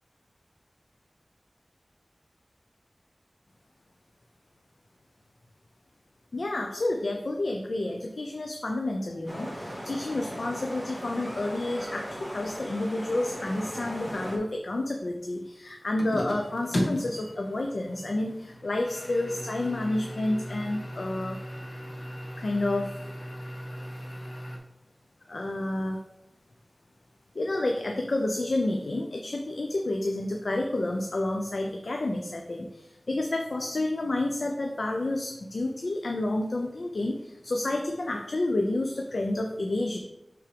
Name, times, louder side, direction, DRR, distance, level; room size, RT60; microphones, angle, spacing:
voice 1, 6.3-21.4 22.4-23.0 25.3-26.0 27.3-40.0, left 2 dB, 75° left, 2 dB, 0.5 m, -30 dB
sound 1, 9.3-14.4, equal, 10° left, 1.8 m, -38 dB
sound 2, 16.0-24.6, equal, 55° left, 1.3 m, -36 dB
5.7 x 3.6 x 5.0 m, 0.89 s
wide cardioid pair, 55°, 0 cm